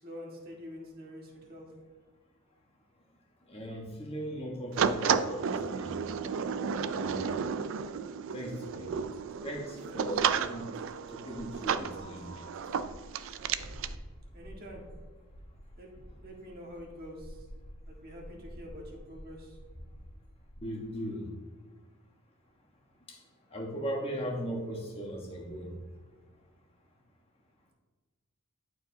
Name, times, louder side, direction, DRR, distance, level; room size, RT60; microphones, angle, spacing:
voice 1, 0.0-1.7 14.3-14.9 15.8-17.5 17.8-19.6, equal, 45° right, -2 dB, 1.6 m, -46 dB
voice 2, 3.5-6.0 6.8-7.2 7.8-8.0 8.3-8.9 9.4-10.6 11.1-12.3 20.6-21.3 23.1-23.2 23.5-25.7, equal, 25° left, 0 dB, 1.3 m, -38 dB
sound 1, 4.8-13.9, right 6 dB, 60° right, 0.3 m, -32 dB
sound 2, 8.3-8.4 8.8-20.6, equal, 40° left, 2.3 m, -50 dB
11.5 x 4.9 x 2.7 m, 1.4 s
head